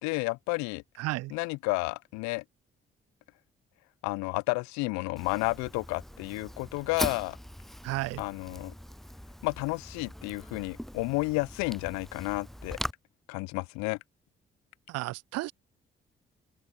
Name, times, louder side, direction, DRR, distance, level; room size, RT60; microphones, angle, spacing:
voice 1, 0.0-0.8 1.3-2.4 4.0-7.4 8.2-8.7 9.4-12.8 13.3-14.0, left 25 dB, 70° left, 0.8 m, -31 dB
voice 2, 1.0-1.3 7.8-8.2 14.9-15.5, right 19 dB, 60° right, 0.4 m, -33 dB
Fire, 5.2-12.9, equal, ahead, 0.4 m, -41 dB
open air
hypercardioid pair, 40°, 29 cm